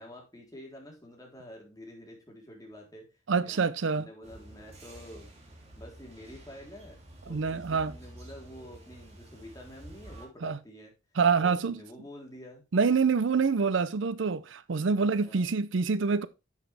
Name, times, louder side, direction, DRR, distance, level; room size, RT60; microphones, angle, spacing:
voice 1, 0.0-3.1 3.4-3.7 3.9-5.3 5.8-7.0 7.2-10.9 11.4-12.6 13.3-13.4 15.2-15.5, equal, 20° left, 3.5 m, -48 dB
voice 2, 3.3-4.0 7.3-7.9 10.4-10.6 11.2-11.8 12.7-16.3, right 5 dB, 75° right, 0.5 m, -26 dB
sound 1, 4.2-10.3, right 1 dB, 35° right, 2.9 m, -49 dB
10.5 x 7.4 x 3.3 m
head